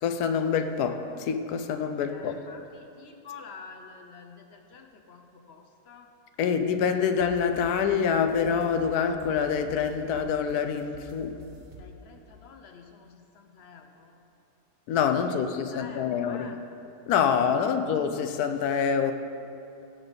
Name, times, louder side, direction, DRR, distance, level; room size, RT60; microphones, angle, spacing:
voice 1, 0.0-2.4 6.4-11.4 14.9-16.5 17.1-19.1, left 7 dB, 80° left, 8 dB, 1.1 m, -26 dB
voice 2, 2.0-6.1 11.7-14.2 15.2-16.6, left 5 dB, 65° left, 4 dB, 0.6 m, -48 dB
sound 1, 7.1-12.4, equal, 55° right, 1.2 m, -49 dB
15.0 x 5.1 x 3.9 m, 2.8 s
omnidirectional pair, 1.7 m